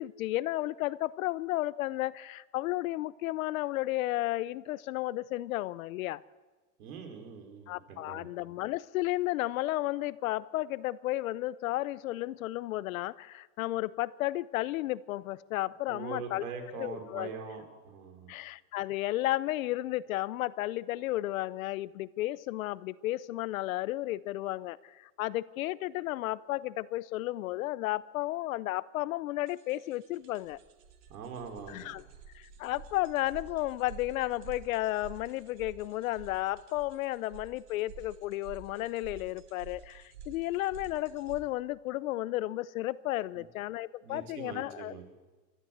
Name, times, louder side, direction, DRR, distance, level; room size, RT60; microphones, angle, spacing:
voice 1, 0.0-6.2 7.7-16.4 16.8-17.3 18.3-30.6 31.7-32.0 32.3-44.9, left 16 dB, 55° left, 19 dB, 0.7 m, -33 dB
voice 2, 6.8-8.3 15.9-18.3 31.1-32.0 43.3-43.4 44.0-45.0, right 5 dB, 60° right, 5 dB, 5.0 m, -43 dB
sound 1, 29.5-41.4, right 6 dB, 30° right, 2.5 m, -51 dB
29.5 x 13.0 x 7.9 m, 1.3 s
supercardioid pair, 160°, 49 cm